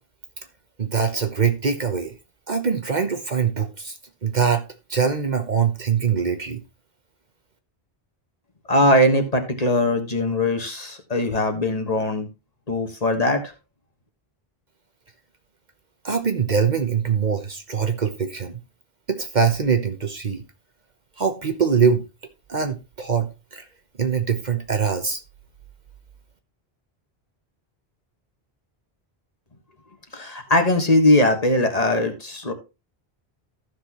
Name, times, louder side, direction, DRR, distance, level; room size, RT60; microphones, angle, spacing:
voice 1, 0.8-2.1 2.5-3.9 4.2-6.6 16.0-18.6 19.1-20.4 21.2-22.1 22.5-23.6 24.0-25.2, right 6 dB, 45° right, 1.1 m, -23 dB
voice 2, 8.7-12.3 12.7-13.4 30.1-32.5, left 1 dB, 40° left, 1.5 m, -20 dB
14.5 x 6.1 x 3.0 m
omnidirectional pair, 1.1 m